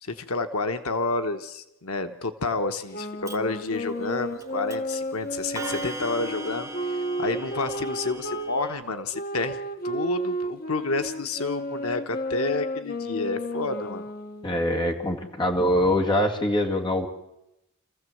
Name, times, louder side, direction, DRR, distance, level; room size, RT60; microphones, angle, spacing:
voice 1, 0.0-14.1, left 3 dB, 80° left, 8 dB, 1.2 m, -30 dB
sound 1, 2.9-8.5 9.1-14.6, equal, 40° left, 1.2 m, -32 dB
Clock, 3.3-3.4 4.4-4.5 4.7-5.0 5.6-8.8, right 2 dB, 15° right, 1.4 m, -38 dB
voice 2, 14.4-17.1, left 1 dB, 20° left, 2 dB, 2.1 m, -23 dB
26.5 x 15.0 x 7.9 m, 0.90 s
head